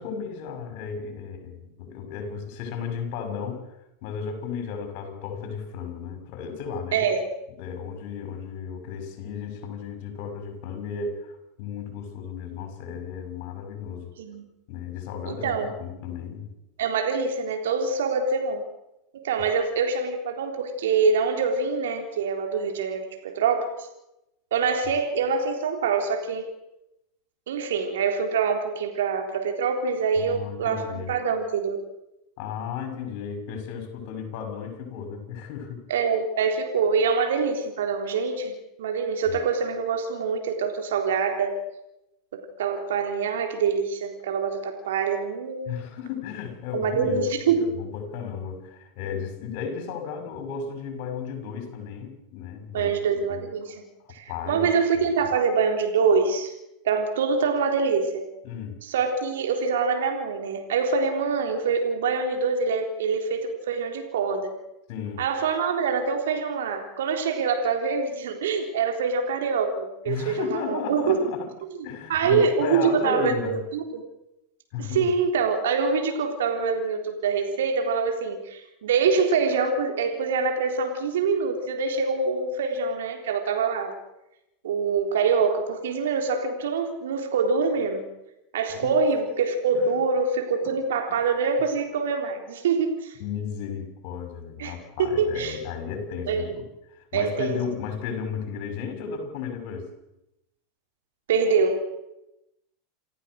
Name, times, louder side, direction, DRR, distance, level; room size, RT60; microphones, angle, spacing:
voice 1, 0.0-3.7 4.0-7.0 7.6-14.1 14.7-16.5 30.2-31.2 32.4-35.8 39.3-39.4 45.7-53.0 53.3-53.5 54.1-54.7 55.0-55.1 58.4-58.8 64.9-65.2 70.1-71.5 71.8-73.6 74.7-75.1 88.7-88.9 89.7-89.9 90.6-90.7 93.2-96.6 96.9-99.9, left 6 dB, 60° left, 5 dB, 6.5 m, -34 dB
voice 2, 6.9-7.2 14.2-14.4 15.3-15.7 16.8-18.6 19.1-23.8 24.5-26.5 27.5-31.8 35.9-41.6 42.3-45.8 46.7-47.7 52.7-53.8 54.1-56.5 56.8-58.2 58.8-64.5 65.2-71.3 72.1-74.0 74.8-83.9 84.6-88.0 88.5-93.2 94.6-94.7 95.0-95.6 96.3-96.5 97.1-97.6 101.3-101.8, right 5 dB, 75° right, 4 dB, 3.7 m, -25 dB
29.0 x 14.5 x 6.5 m, 0.87 s
hypercardioid pair, 90°, 0 cm